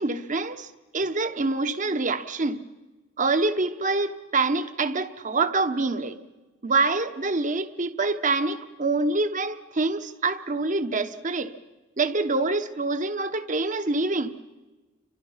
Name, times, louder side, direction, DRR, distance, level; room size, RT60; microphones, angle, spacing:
voice 1, 0.0-2.6 3.2-6.2 6.6-11.5 12.0-14.3, right 3 dB, 40° right, 1.1 m, -26 dB
30.0 x 25.0 x 5.7 m
head